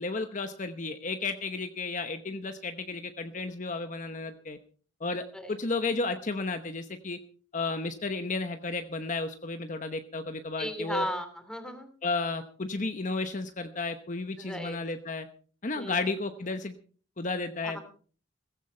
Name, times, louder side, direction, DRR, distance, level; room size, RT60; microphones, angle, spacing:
voice 1, 0.0-4.6 5.0-7.2 7.5-11.1 12.0-15.3 15.6-16.8 17.2-17.8, left 3 dB, 40° left, 8 dB, 1.0 m, -33 dB
voice 2, 10.6-11.9 14.4-14.8 15.8-16.2 17.6-17.8, left 1 dB, 5° left, 8 dB, 2.8 m, -36 dB
16.5 x 15.5 x 4.4 m, 0.42 s
head